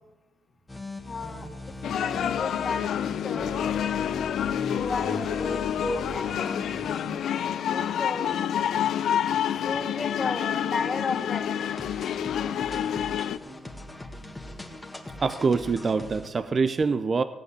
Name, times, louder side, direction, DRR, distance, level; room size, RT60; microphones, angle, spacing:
sound 1, 0.7-16.3, left 2 dB, 10° left, 1.8 m, -41 dB
voice 1, 1.1-1.5 1.8-6.6 7.7-8.4 9.6-11.5, left 3 dB, 30° left, 3 dB, 1.7 m, -34 dB
sound 2, 1.8-13.4, left 9 dB, 70° left, 0.6 m, -28 dB
voice 2, 15.2-17.2, right 4 dB, 35° right, 10 dB, 0.6 m, -25 dB
17.5 x 8.3 x 8.4 m, 1.1 s
cardioid pair, 120°, 0 cm